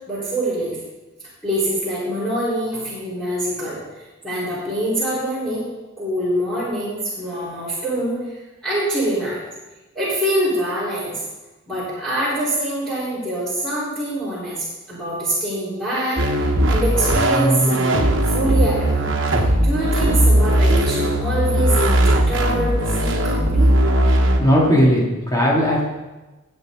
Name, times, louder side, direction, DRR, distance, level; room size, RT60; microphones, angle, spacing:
voice 1, 0.1-0.8 1.4-5.7 6.0-9.4 9.9-11.2 11.7-18.0 18.3-19.1 19.3-23.8, right 1 dB, 5° left, -12 dB, 4.5 m, -25 dB
sound 1, 16.2-24.4, right 1 dB, 60° right, 1.2 m, -18 dB
voice 2, 24.1-25.8, equal, 20° left, -5 dB, 3.1 m, -17 dB
20.0 x 7.7 x 4.0 m, 1.1 s
head